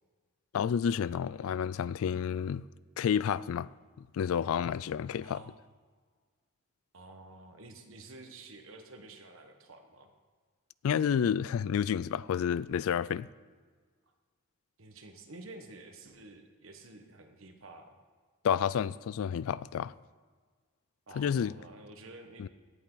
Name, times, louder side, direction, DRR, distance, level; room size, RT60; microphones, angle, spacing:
voice 1, 0.5-2.6 3.0-3.7 4.1-5.4 10.8-13.3 18.4-19.9 21.2-21.5 22.4-22.5, left 8 dB, 65° left, 0.3 m, -30 dB
voice 2, 5.2-5.6 6.9-10.1 14.8-18.0 21.1-22.5, right 2 dB, 60° right, 1.3 m, -50 dB
17.0 x 8.3 x 3.9 m
head